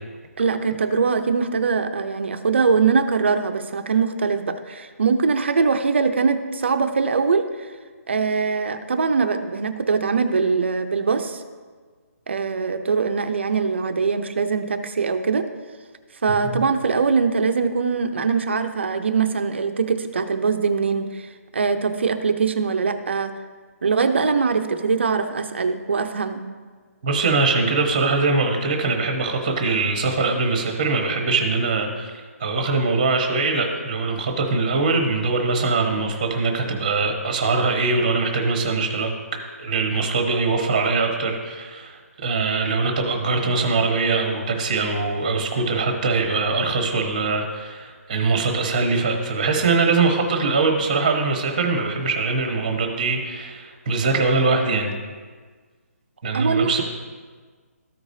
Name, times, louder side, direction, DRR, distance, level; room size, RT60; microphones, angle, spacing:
voice 1, 0.4-7.5 8.1-11.4 12.3-15.5 16.2-23.3 23.8-26.5 56.3-56.8, right 5 dB, 45° right, 7 dB, 0.6 m, -22 dB
voice 2, 27.0-54.9 56.2-56.8, right 3 dB, 25° right, 3 dB, 1.0 m, -22 dB
14.0 x 4.9 x 2.7 m, 1.5 s
hypercardioid pair, 175°, 8 cm